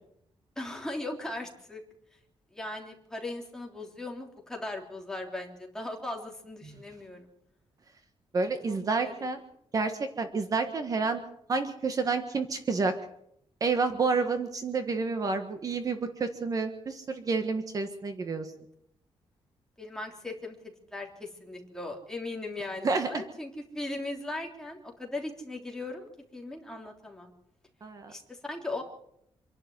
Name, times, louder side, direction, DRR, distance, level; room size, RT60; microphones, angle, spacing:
voice 1, 0.5-1.8 2.5-7.3 8.7-9.3 19.8-20.6 20.9-27.3 28.1-28.8, left 2 dB, 5° left, 0 dB, 3.4 m, -38 dB
voice 2, 8.3-9.4 9.7-11.2 11.5-12.9 13.6-18.5 22.8-23.1 27.8-28.1, right 4 dB, 35° right, 7 dB, 1.5 m, -29 dB
26.5 x 11.5 x 9.5 m, 0.75 s
wide cardioid pair, 165°, 10 cm